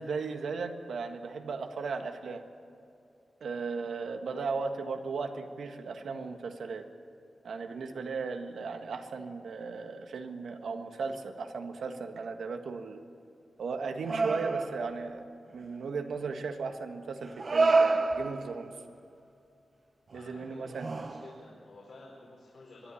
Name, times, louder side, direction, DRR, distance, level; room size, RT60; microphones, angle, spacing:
voice 1, 0.0-2.4 3.4-6.8 7.4-13.0 13.6-15.2 15.5-18.7 20.1-20.9, right 4 dB, 85° right, 6 dB, 1.4 m, -36 dB
sound 1, 14.0-15.0 16.2-16.3 17.2-18.6 20.1-20.2 20.7-21.4, right 3 dB, 40° right, 0.9 m, -28 dB
voice 2, 20.1-22.9, left 2 dB, 65° left, -5 dB, 4.5 m, -51 dB
23.0 x 11.5 x 9.9 m, 2.6 s
wide cardioid pair, 130°, 0 cm